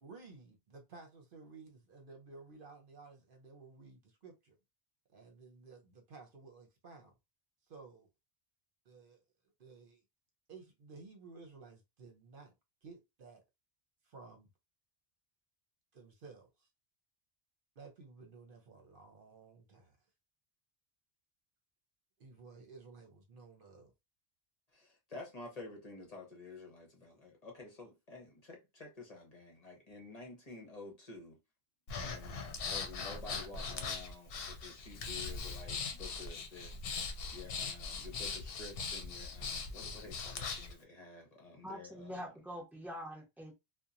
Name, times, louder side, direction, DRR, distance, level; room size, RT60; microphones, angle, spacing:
voice 1, 0.0-4.6 5.1-7.1 7.7-8.1 8.9-9.2 9.6-10.0 10.5-12.5 12.8-13.4 14.0-14.5 15.9-16.7 17.8-20.0 22.2-23.9, right 4 dB, 60° right, 0.9 m, -55 dB
voice 2, 24.7-31.4 32.0-42.2, left 3 dB, 40° left, 0.8 m, -51 dB
Breathing, 31.9-40.7, left 4 dB, 70° left, 0.8 m, -40 dB
voice 3, 41.6-43.6, equal, ahead, 0.7 m, -45 dB
2.9 x 2.1 x 2.5 m
omnidirectional pair, 1.1 m